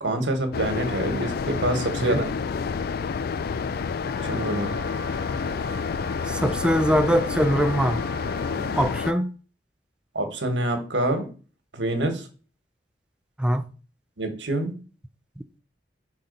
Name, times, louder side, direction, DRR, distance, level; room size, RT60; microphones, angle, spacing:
voice 1, 0.0-2.3 4.2-4.8 8.6-8.7 10.1-11.3 11.7-12.3 14.2-14.8, right 1 dB, 80° right, 1.5 m, -26 dB
sound 1, 0.5-9.1, left 5 dB, 55° left, 0.4 m, -29 dB
Wind instrument woodwind instrument, 4.0-9.2, left 1 dB, 75° left, 2.3 m, -39 dB
voice 2, 6.3-8.0 8.7-9.3 13.4-13.7, equal, 5° right, 0.5 m, -22 dB
5.9 x 3.7 x 5.3 m
head